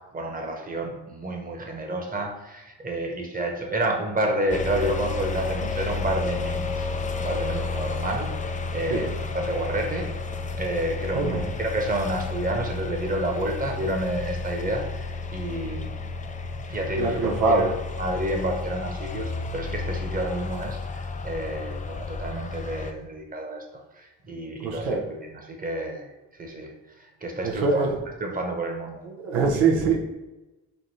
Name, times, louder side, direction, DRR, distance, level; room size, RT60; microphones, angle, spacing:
voice 1, 0.1-6.9 7.2-10.1 10.6-16.1 16.7-17.7 18.0-27.9 28.2-29.1, right 1 dB, 20° right, 1 dB, 1.0 m, -30 dB
sound 1, 4.5-22.9, left 4 dB, 20° left, 0.3 m, -32 dB
voice 2, 11.1-11.5 17.0-17.7 24.6-25.0 27.4-27.9 29.0-30.0, right 4 dB, 90° right, -1 dB, 0.8 m, -23 dB
3.4 x 2.6 x 4.1 m, 1.1 s
supercardioid pair, 50°, 44 cm